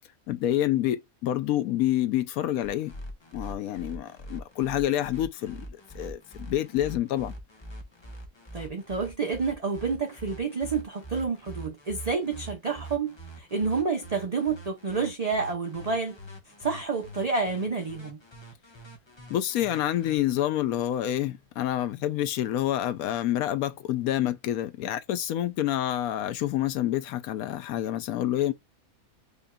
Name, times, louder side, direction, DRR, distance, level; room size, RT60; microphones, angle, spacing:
voice 1, 0.3-2.9 3.3-5.7 5.9-7.3 19.3-28.5, left 12 dB, 80° left, 1.1 m, -28 dB
sound 1, 2.6-20.2, right 1 dB, 25° left, 0.8 m, -43 dB
voice 2, 8.5-16.2 16.5-18.2, right 4 dB, 35° right, 0.7 m, -29 dB
5.1 x 2.7 x 2.2 m
omnidirectional pair, 1.5 m